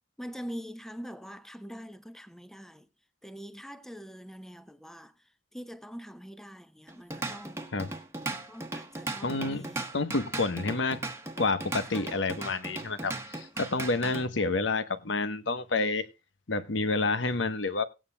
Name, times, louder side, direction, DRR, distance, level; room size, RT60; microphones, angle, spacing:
voice 1, 0.2-2.9 3.2-5.1 5.5-7.7 8.3-9.9 11.9-12.1 14.4-14.5, equal, 5° left, 0.7 m, -44 dB
Drum kit / Drum, 6.9-14.3, right 2 dB, 15° right, 1.1 m, -37 dB
voice 2, 9.2-9.7 9.9-11.0 11.4-16.1 16.5-17.8, left 3 dB, 80° left, 1.1 m, -29 dB
18.0 x 9.4 x 2.3 m
head